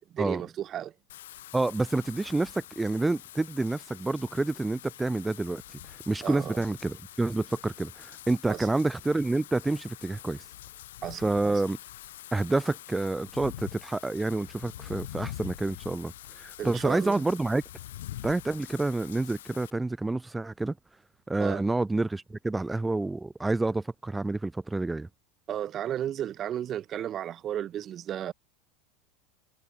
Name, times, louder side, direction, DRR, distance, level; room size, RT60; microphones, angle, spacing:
voice 1, 0.1-0.9 6.2-6.6 8.5-8.7 11.0-11.6 16.6-17.2 21.4-21.6 25.5-28.3, right 10 dB, 35° right, 1.8 m, -34 dB
Wind / Rain, 1.1-19.7, left 14 dB, 85° left, 3.6 m, -45 dB
voice 2, 1.5-10.4 11.2-11.8 12.3-17.6 18.2-20.8 21.3-25.1, right 2 dB, 10° right, 2.5 m, -28 dB
supercardioid pair, 110°, 0 cm